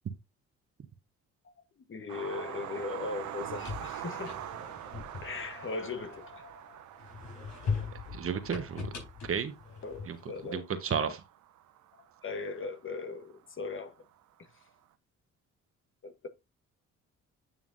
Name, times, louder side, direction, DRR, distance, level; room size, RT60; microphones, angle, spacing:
voice 1, 1.4-4.4 5.2-6.9 9.8-10.7 12.2-14.0 14.4-14.5 16.0-16.3, left 4 dB, 40° left, 1.2 m, -39 dB
sound 1, 2.1-13.1 14.2-14.3 14.6-14.7, right 12 dB, 70° right, 0.8 m, -45 dB
sound 2, 3.2-6.5 7.0-10.4, left 5 dB, 70° left, 4.5 m, -40 dB
voice 2, 8.1-8.9 9.2-9.5 10.1-10.2 10.5-11.2, right 7 dB, 45° right, 1.2 m, -32 dB
9.4 x 5.8 x 2.6 m
cardioid pair, 90°, 30 cm